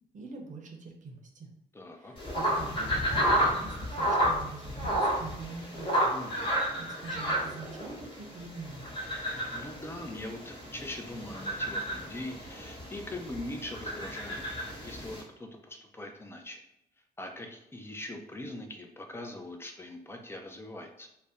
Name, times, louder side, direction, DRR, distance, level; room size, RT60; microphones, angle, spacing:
voice 1, 0.1-1.5 1.9-3.0 3.3-6.1 6.8-8.8, right 4 dB, 50° right, 2 dB, 0.7 m, -44 dB
voice 2, 1.7-2.1 6.1-6.5 9.5-16.6 17.2-21.1, left 1 dB, 15° left, 3 dB, 0.6 m, -42 dB
sound 1, 2.2-15.2, equal, 30° left, 1.3 m, -32 dB
2.6 x 2.1 x 3.5 m, 0.81 s
supercardioid pair, 60°, 16 cm